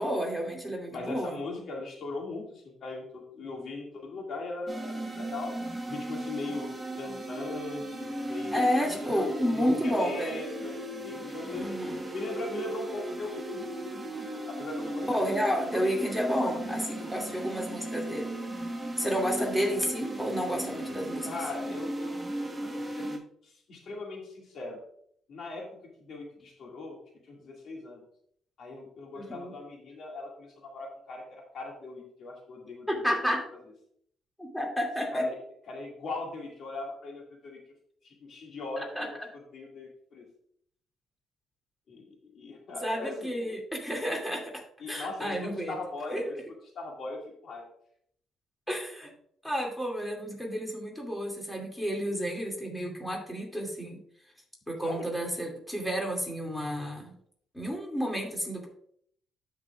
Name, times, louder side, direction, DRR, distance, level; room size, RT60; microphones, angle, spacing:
voice 1, 0.0-1.4 8.5-10.4 11.5-12.0 15.1-18.3 19.0-21.3 29.2-29.5 32.9-33.4 34.4-35.3 38.8-39.1 42.8-45.7 46.1-46.2 48.7-49.1 49.4-54.0 54.7-57.1 57.5-58.7, equal, 5° left, 0 dB, 2.4 m, -31 dB
voice 2, 0.9-5.6 5.9-8.8 9.1-10.7 11.0-11.8 12.1-13.6 13.9-15.8 16.3-16.8 19.4-19.7 21.2-24.8 25.3-25.7 26.0-27.0 27.2-28.0 28.6-33.0 33.3-33.4 35.1-35.4 35.7-37.6 38.0-40.3 41.9-43.6 44.8-46.4 46.8-47.7 54.8-55.1, left 3 dB, 60° left, 0 dB, 2.1 m, -40 dB
sound 1, 4.7-23.2, right 1 dB, 15° right, 1.4 m, -37 dB
12.5 x 5.6 x 2.4 m, 0.65 s
cardioid pair, 90°, 0 cm